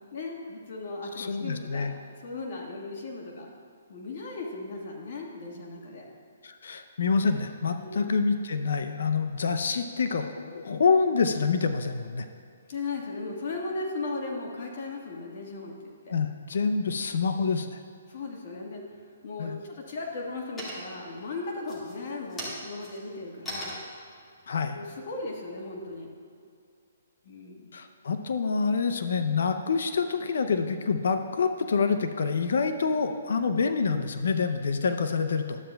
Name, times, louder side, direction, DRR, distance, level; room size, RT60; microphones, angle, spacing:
voice 1, 0.1-1.9 2.2-3.5 3.9-6.1 7.7-8.0 12.7-16.1 18.1-18.8 19.2-23.8 24.7-26.1 27.2-27.8, left 3 dB, 50° left, 0 dB, 1.5 m, -37 dB
voice 2, 1.2-1.9 6.4-12.3 16.1-17.8 19.4-19.6 24.5-24.8 27.7-35.6, left 5 dB, 70° left, 8 dB, 0.6 m, -27 dB
sound 1, 18.9-19.5 19.9-20.3 20.6-21.1 21.6-26.0, equal, 10° left, 2.0 m, -41 dB
12.0 x 8.7 x 2.3 m, 2.4 s
hypercardioid pair, 155°, 0 cm